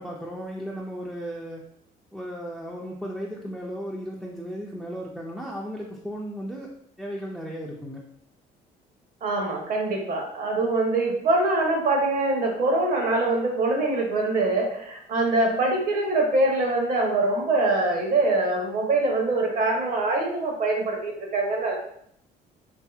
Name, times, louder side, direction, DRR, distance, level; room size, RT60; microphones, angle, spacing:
voice 1, 0.0-1.6 2.1-6.7 7.0-8.0, equal, ahead, -3 dB, 0.3 m, -35 dB
voice 2, 9.2-21.7, right 2 dB, 55° right, 0 dB, 0.9 m, -24 dB
2.7 x 2.6 x 2.4 m, 0.68 s
cardioid pair, 110°, 17 cm